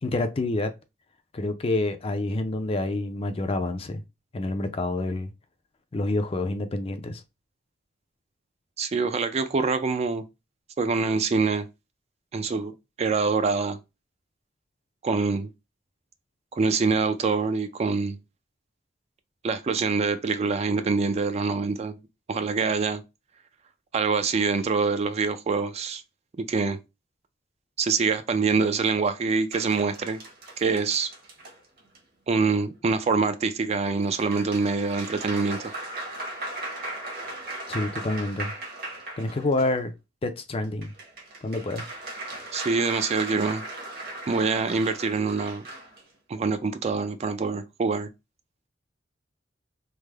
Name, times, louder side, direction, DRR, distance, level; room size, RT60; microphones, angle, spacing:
voice 1, 0.0-0.7 1.3-4.0 4.3-5.3 5.9-7.2 37.7-38.5 39.2-39.9 40.2-40.9 41.4-41.9, left 2 dB, 30° left, 0.4 m, -27 dB
voice 2, 8.8-10.2 10.8-11.7 12.3-13.8 15.0-15.5 16.5-18.2 19.4-22.0 22.3-23.0 23.9-26.0 26.5-26.8 27.8-30.2 30.6-31.1 32.3-35.7 42.5-43.6 44.3-45.7 46.3-48.1, right 4 dB, 35° right, 0.3 m, -25 dB
sound 1, 29.5-32.0 33.8-39.8 40.6-46.0, right 2 dB, 50° right, 1.0 m, -38 dB
3.3 x 2.0 x 3.3 m
head